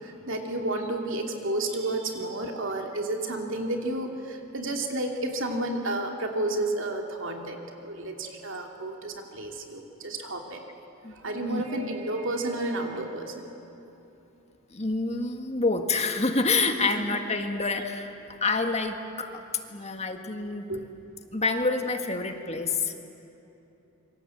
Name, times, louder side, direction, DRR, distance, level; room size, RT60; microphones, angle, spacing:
voice 1, 0.0-10.6 11.2-13.5 16.8-16.9 20.7-20.8, right 2 dB, 65° right, 2 dB, 2.9 m, -31 dB
voice 2, 11.0-11.7 14.7-18.1 18.4-19.4 19.7-20.6 21.3-22.9, left 3 dB, 30° left, 5 dB, 1.6 m, -27 dB
26.5 x 24.5 x 7.9 m, 2.9 s
head